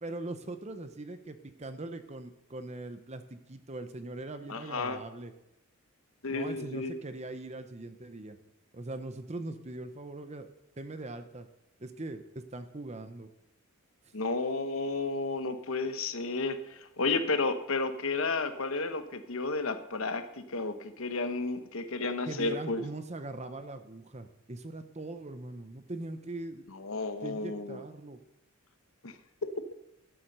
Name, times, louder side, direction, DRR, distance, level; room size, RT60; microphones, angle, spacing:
voice 1, 0.0-5.3 6.3-8.4 8.7-10.5 10.8-11.5 11.8-13.3 22.3-26.6 27.2-28.2, right 2 dB, 30° right, 9 dB, 0.8 m, -41 dB
voice 2, 4.5-5.0 6.2-6.9 14.1-22.8 26.7-27.8 29.0-29.6, left 3 dB, 65° left, 9 dB, 1.0 m, -32 dB
13.0 x 9.3 x 6.7 m, 0.87 s
head